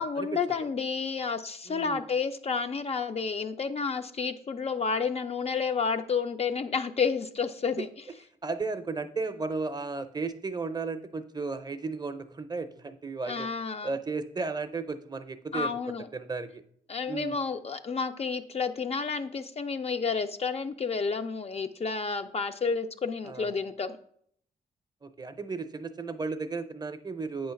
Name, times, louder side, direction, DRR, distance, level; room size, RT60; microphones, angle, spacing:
voice 1, 0.0-7.9 13.3-14.0 15.5-16.1 16.9-24.0, left 5 dB, 40° left, 8 dB, 0.4 m, -30 dB
voice 2, 1.7-2.0 8.4-13.5 13.8-15.8 16.1-16.6 17.1-17.4 23.2-23.5 25.0-27.5, right 4 dB, 25° right, 10 dB, 0.5 m, -34 dB
8.1 x 3.2 x 5.7 m, 0.65 s
cardioid pair, 90°, 17 cm